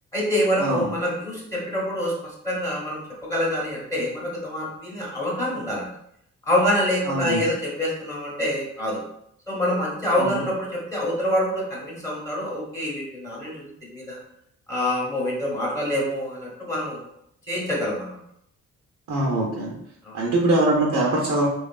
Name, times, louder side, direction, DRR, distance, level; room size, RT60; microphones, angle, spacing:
voice 1, 0.1-3.0 3.3-5.9 6.4-9.0 9.5-14.2 14.7-17.1 17.5-18.2 20.0-20.3, left 1 dB, 10° left, -5 dB, 0.9 m, -26 dB
voice 2, 7.1-7.4 10.2-10.3 19.1-19.7 20.1-21.5, right 2 dB, 70° right, -3 dB, 0.6 m, -22 dB
2.8 x 2.4 x 2.3 m, 0.74 s
cardioid pair, 90°, 30 cm